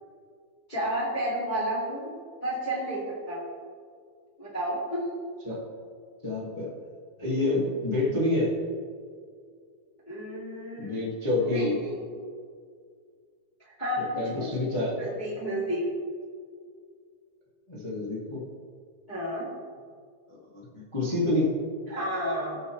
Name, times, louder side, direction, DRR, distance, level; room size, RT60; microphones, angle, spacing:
voice 1, 0.7-2.1 2.4-3.4 4.4-5.0 10.1-11.0 11.4-12.0 13.8-14.5 15.0-15.8 19.1-19.5 21.9-22.6, equal, 15° left, -7 dB, 1.7 m, -31 dB
voice 2, 6.2-6.7 7.2-8.5 10.8-11.7 14.1-15.0 17.7-18.4 20.7-21.5, left 2 dB, 35° left, -7 dB, 0.4 m, -27 dB
17.5 x 6.8 x 3.2 m, 2.1 s
omnidirectional pair, 4.7 m